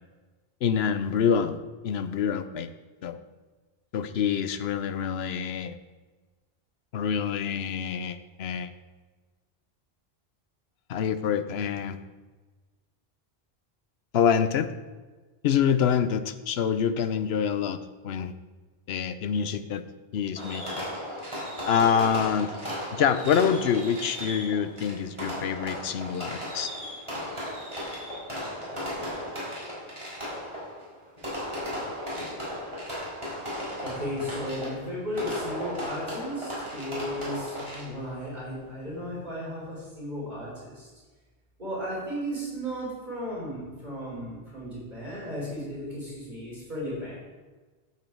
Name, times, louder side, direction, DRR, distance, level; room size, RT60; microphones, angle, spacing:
voice 1, 0.6-2.7 3.0-3.2 3.9-5.8 6.9-8.7 10.9-12.0 14.1-14.7 15.4-17.8 18.0-18.3 18.9-19.8 20.1-20.9 21.7-22.5 22.9-26.7, left 7 dB, 80° left, 12 dB, 0.9 m, -26 dB
Fireworks, 20.4-38.1, equal, 30° right, 3.8 m, -36 dB
voice 2, 33.8-40.9 41.6-47.2, equal, 45° right, -6 dB, 3.9 m, -35 dB
12.5 x 7.7 x 4.6 m, 1.3 s
omnidirectional pair, 1.0 m